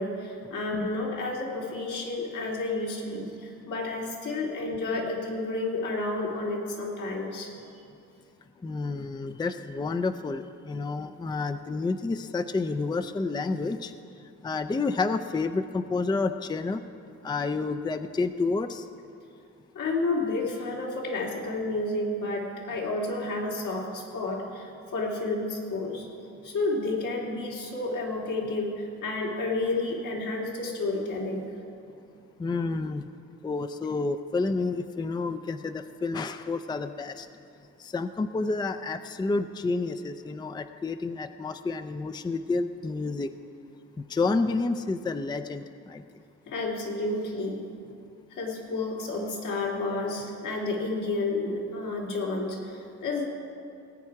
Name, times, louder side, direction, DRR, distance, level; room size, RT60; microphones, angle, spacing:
voice 1, 0.0-7.5 19.7-26.1 26.4-31.6 46.5-47.6 48.3-53.3, left 2 dB, 80° left, -3 dB, 3.0 m, -31 dB
voice 2, 8.6-13.9 14.4-16.8 17.2-18.9 32.4-33.0 33.4-37.3 37.8-43.3 44.1-46.0, left 3 dB, 15° left, 10 dB, 0.4 m, -29 dB
19.0 x 8.8 x 4.7 m, 2.5 s
cardioid pair, 90°, 30 cm